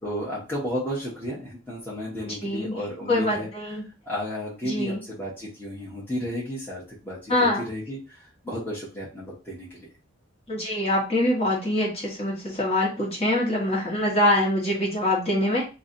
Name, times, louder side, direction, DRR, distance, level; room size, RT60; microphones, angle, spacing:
voice 1, 0.0-3.5 4.1-9.9, equal, 10° left, -7 dB, 1.0 m, -33 dB
voice 2, 2.2-2.7 3.1-3.8 4.6-5.0 7.3-7.6 10.5-15.6, left 1 dB, 30° left, -4 dB, 1.3 m, -24 dB
2.9 x 2.8 x 3.8 m, 0.32 s
head